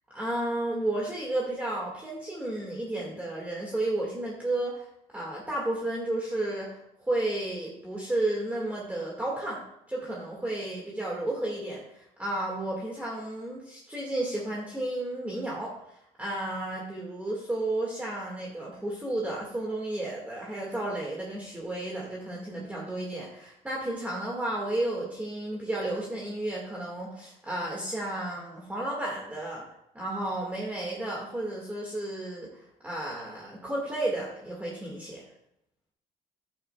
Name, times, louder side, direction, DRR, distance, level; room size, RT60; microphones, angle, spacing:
voice 1, 0.1-4.9 5.1-29.7 30.0-35.2, right 1 dB, 10° right, -4 dB, 1.8 m, -32 dB
11.0 x 8.7 x 2.3 m, 0.78 s
cardioid pair, 110°, 17 cm